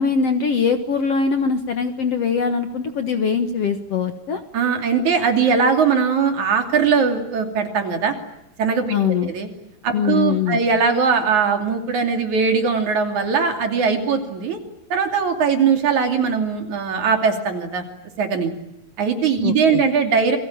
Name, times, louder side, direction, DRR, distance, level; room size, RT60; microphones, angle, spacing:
voice 1, 0.0-4.4 8.9-9.3 9.9-10.6 19.4-19.8, left 6 dB, 55° left, 8 dB, 1.9 m, -22 dB
voice 2, 4.5-8.2 8.6-9.5 9.8-14.6 14.9-17.8 18.2-18.5 19.0-20.4, right 5 dB, 55° right, 5 dB, 4.0 m, -20 dB
29.0 x 23.0 x 8.8 m, 0.87 s
omnidirectional pair, 4.1 m